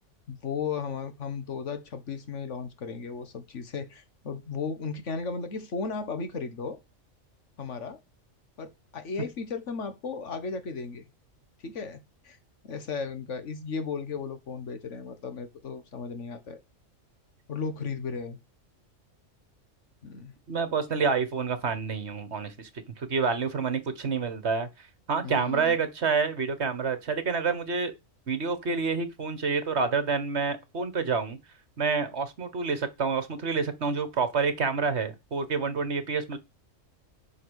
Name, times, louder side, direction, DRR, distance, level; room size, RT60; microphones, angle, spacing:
voice 1, 0.3-6.8 7.6-8.0 8.6-11.1 11.6-12.4 12.6-16.6 17.5-18.4 20.0-20.3 25.2-25.8, left 5 dB, 65° left, 1.7 m, -35 dB
voice 2, 20.5-22.7 23.0-27.9 28.3-31.4 31.8-36.4, right 5 dB, 55° right, 1.7 m, -28 dB
8.4 x 6.0 x 6.4 m
omnidirectional pair, 1.4 m